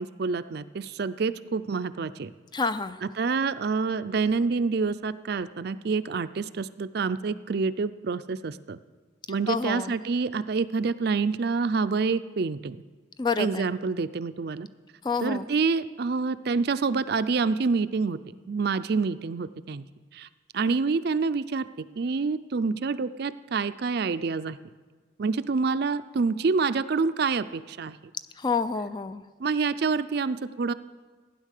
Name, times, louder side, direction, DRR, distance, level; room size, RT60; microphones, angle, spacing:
voice 1, 0.0-2.3 3.0-8.8 9.3-12.8 13.4-14.7 15.2-18.2 18.5-19.8 20.1-20.3 20.5-21.7 22.0-24.6 25.2-28.0 29.4-30.7, right 4 dB, 55° right, 13 dB, 0.4 m, -27 dB
voice 2, 2.5-3.0 9.5-9.9 13.2-13.7 15.0-15.5 28.4-29.2, left 5 dB, 25° left, 12 dB, 0.4 m, -28 dB
15.5 x 9.9 x 6.6 m, 1.4 s
head